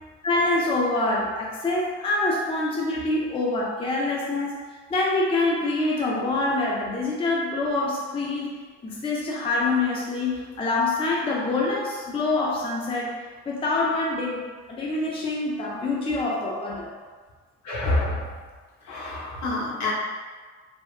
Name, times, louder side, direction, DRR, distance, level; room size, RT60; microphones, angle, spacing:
voice 1, 0.2-4.6 4.9-8.5 8.8-13.1 13.5-16.9, left 2 dB, 20° left, -3 dB, 0.4 m, -25 dB
voice 2, 17.6-18.3 18.8-19.9, left 2 dB, 65° left, -4 dB, 0.9 m, -27 dB
3.6 x 2.0 x 2.4 m, 1.5 s
cardioid pair, 90°, 30 cm